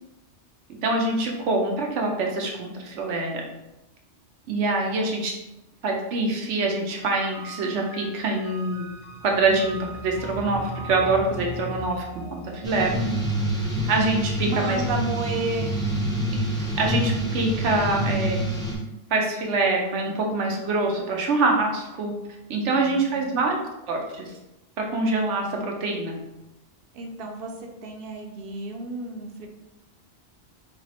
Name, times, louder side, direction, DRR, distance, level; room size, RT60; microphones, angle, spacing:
voice 1, 0.8-3.4 4.5-5.3 5.8-8.8 9.2-12.9 13.9-14.8 16.8-18.4 19.1-22.1 22.5-23.6 23.9-24.2 24.8-26.2, right 3 dB, 85° right, 1 dB, 1.0 m, -25 dB
sound 1, 7.0-14.3, equal, 55° left, 0.6 m, -39 dB
sound 2, 12.6-18.7, right 1 dB, 5° left, 0.4 m, -27 dB
voice 2, 14.4-15.8 22.7-23.4 26.9-29.5, right 2 dB, 60° right, 2 dB, 0.7 m, -32 dB
3.3 x 2.0 x 4.1 m, 0.94 s
omnidirectional pair, 1.2 m